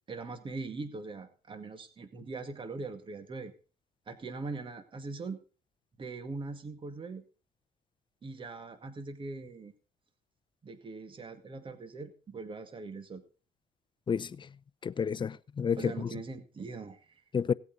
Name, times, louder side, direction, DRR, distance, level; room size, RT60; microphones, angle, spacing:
voice 1, 0.1-3.5 4.1-5.4 6.0-7.2 8.2-9.7 10.6-13.2 15.8-17.2, right 3 dB, 30° right, 2.1 m, -41 dB
voice 2, 14.1-14.5 14.8-16.1 17.3-17.5, left 6 dB, 30° left, 0.7 m, -30 dB
18.0 x 8.6 x 4.0 m
cardioid pair, 110°, 17 cm